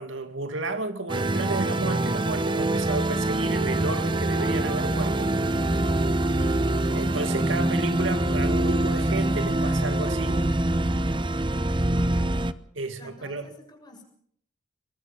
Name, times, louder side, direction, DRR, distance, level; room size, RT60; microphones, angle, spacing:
voice 1, 0.0-5.4 6.9-10.5 12.8-13.5, right 3 dB, 80° right, 2.3 m, -32 dB
sound 1, 1.1-12.5, right 1 dB, 25° right, 0.9 m, -24 dB
sound 2, 2.1-8.6, left 1 dB, 80° left, 4.9 m, -50 dB
voice 2, 6.0-8.2 11.9-12.5 13.0-14.0, equal, 20° left, 6.9 m, -47 dB
23.5 x 21.0 x 5.6 m
head